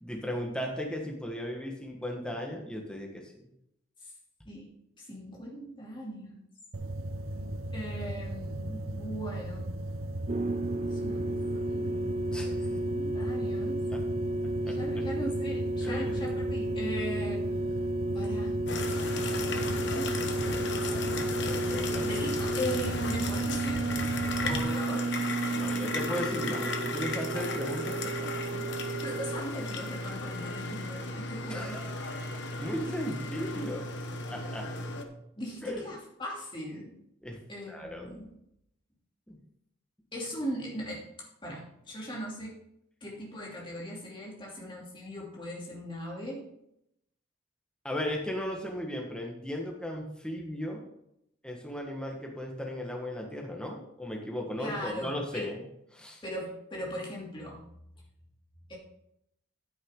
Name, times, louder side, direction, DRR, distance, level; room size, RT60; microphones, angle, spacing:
voice 1, 0.0-3.5 12.3-12.8 13.9-14.0 14.6-14.8 15.8-16.3 21.5-22.1 25.5-28.3 31.5-32.1 32.6-34.7 35.6-35.8 37.2-37.4 37.7-38.3 39.3-39.4 47.8-50.8 51.4-55.6 55.9-56.2, equal, 5° left, 0 dB, 1.4 m, -36 dB
voice 2, 5.0-6.4 7.7-9.7 10.9-11.4 11.7-12.2 12.7-13.8 14.7-17.6 18.1-18.6 19.4-21.2 22.0-25.1 29.0-31.8 32.1-32.2 35.4-36.9 37.5-38.3 40.1-42.6 43.0-46.4 54.6-55.5 56.2-57.6 58.7-58.8, equal, 25° left, -3 dB, 2.8 m, -39 dB
sound 1, 6.7-24.6, right 1 dB, 90° right, 1.0 m, -37 dB
sound 2, 10.3-29.4, right 2 dB, 30° right, 0.4 m, -33 dB
sound 3, 18.7-35.0, left 2 dB, 60° left, 1.1 m, -35 dB
10.0 x 9.4 x 3.8 m, 0.79 s
head